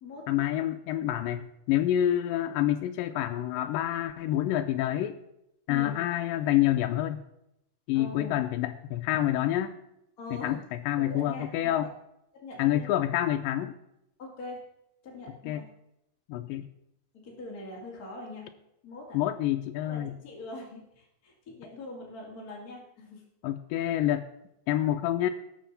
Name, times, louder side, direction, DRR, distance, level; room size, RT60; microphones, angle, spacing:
voice 1, 0.3-5.2 5.7-7.2 7.9-9.8 10.3-11.9 12.6-13.8 15.5-15.6 16.3-16.7 19.1-20.1 23.4-24.2 24.7-25.3, left 12 dB, 90° left, 5 dB, 2.3 m, -27 dB
voice 2, 7.9-8.5 10.2-10.6 11.0-11.5 11.8-11.9 12.3-12.9 14.2-14.6 15.0-15.7 17.1-18.5 18.8-19.2 19.8-23.2, left 2 dB, 30° left, -2 dB, 2.4 m, -42 dB
19.0 x 6.7 x 4.1 m, 0.83 s
omnidirectional pair, 3.9 m